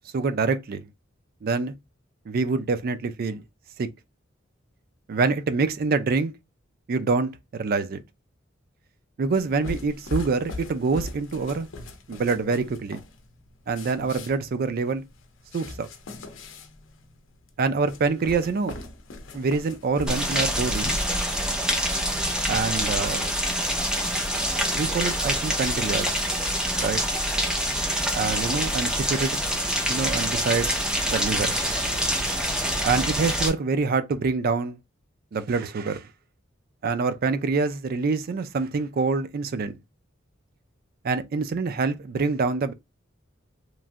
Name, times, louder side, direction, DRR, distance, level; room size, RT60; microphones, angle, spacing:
voice 1, 0.1-0.9 1.4-1.7 2.3-3.4 3.8-3.9 5.1-6.3 6.9-8.0 9.2-11.7 12.1-13.0 13.7-15.0 15.5-15.9 17.6-18.7 19.3-21.0 22.5-23.3 24.7-26.1 26.8-27.0 28.1-29.4 29.9-30.7 31.1-31.5 32.8-34.8 35.3-36.1 36.8-39.8 41.0-42.7, right 4 dB, 50° right, 0.4 m, -26 dB
sound 1, 9.3-21.1, left 2 dB, 70° left, 0.6 m, -40 dB
Rain, 20.1-33.5, equal, 5° right, 0.6 m, -26 dB
3.1 x 2.4 x 2.5 m
head